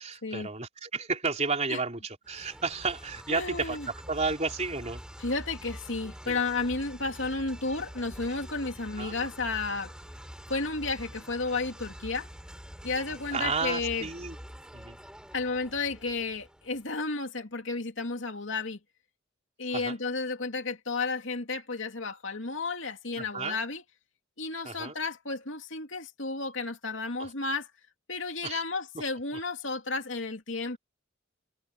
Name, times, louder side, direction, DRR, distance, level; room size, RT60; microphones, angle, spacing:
voice 1, 0.0-3.8 4.1-5.0 6.3-6.4 9.0-9.1 13.3-14.4 14.7-15.0 19.7-20.0 23.2-23.6 24.6-24.9 27.2-27.3 28.4-28.6, right 4 dB, 35° right, 3.6 m, -32 dB
sound 1, 2.2-16.9, equal, 5° right, 6.1 m, -46 dB
voice 2, 3.3-3.9 5.2-9.9 10.5-12.3 12.8-14.1 15.3-18.8 19.6-23.8 24.4-27.7 28.1-30.8, left 3 dB, 70° left, 2.9 m, -32 dB
head